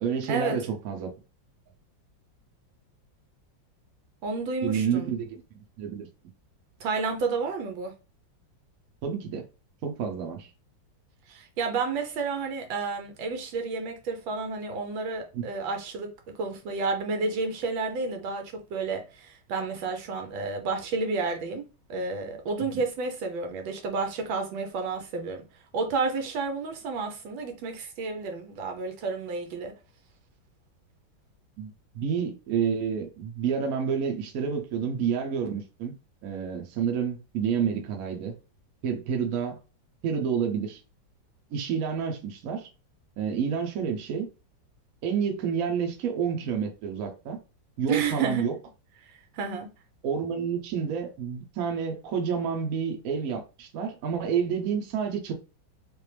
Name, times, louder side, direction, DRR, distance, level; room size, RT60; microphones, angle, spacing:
voice 1, 0.0-1.1 4.6-5.4 5.8-6.1 9.0-9.4 9.8-10.5 15.3-15.4 22.7-22.8 31.6-35.9 36.2-38.3 38.8-39.6 40.0-40.8 41.5-42.7 43.2-44.3 45.0-47.4 47.8-48.5 50.0-55.3, right 7 dB, 60° right, 1.1 m, -29 dB
voice 2, 4.2-5.1 6.8-7.9 11.3-25.4 25.7-29.7 47.9-48.4 49.0-49.7, right 4 dB, 85° right, 1.6 m, -31 dB
3.3 x 3.0 x 3.3 m
omnidirectional pair, 2.1 m